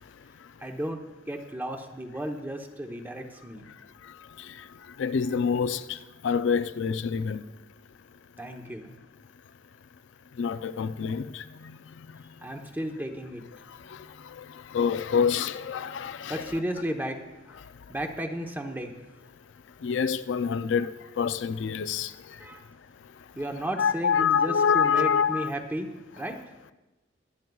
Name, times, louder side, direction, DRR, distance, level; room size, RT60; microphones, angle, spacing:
voice 1, 0.6-1.0 1.3-3.7 8.4-8.9 12.4-13.4 16.3-17.2 17.5-17.6 17.9-18.9 22.4-22.6 23.4-25.9 26.2-26.4, right 1 dB, 10° right, 0.9 m, -33 dB
voice 2, 5.0-6.0 6.2-7.4 10.4-11.4 14.4-14.5 14.7-16.5 19.8-20.9 21.2-22.1 23.8-25.5, left 6 dB, 75° left, 0.4 m, -26 dB
22.5 x 9.3 x 2.3 m
head